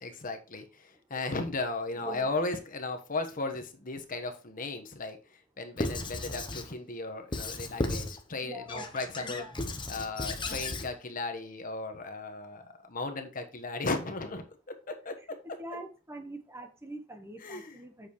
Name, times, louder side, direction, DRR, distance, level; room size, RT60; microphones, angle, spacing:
voice 1, 0.0-9.4 9.9-15.8 17.4-17.8, left 3 dB, 45° left, 1.2 m, -36 dB
voice 2, 1.9-2.3 8.4-8.9 9.2-9.6 10.4-10.7 15.6-18.1, right 1 dB, 15° right, 1.0 m, -43 dB
Squeak / Writing, 5.8-6.7 7.3-8.2 8.7-10.9, left 2 dB, 25° left, 0.9 m, -35 dB
8.0 x 6.6 x 3.1 m
head